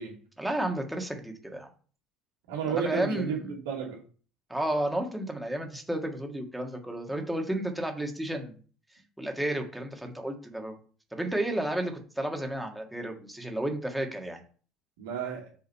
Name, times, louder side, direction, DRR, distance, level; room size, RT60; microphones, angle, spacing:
voice 1, 0.4-1.7 2.7-3.5 4.5-8.5 9.2-10.7 11.1-14.4, right 1 dB, 5° right, 1.7 m, -32 dB
voice 2, 2.5-4.0 15.0-15.5, right 7 dB, 90° right, 2.4 m, -32 dB
7.0 x 3.8 x 5.5 m
supercardioid pair, 100°, 0 cm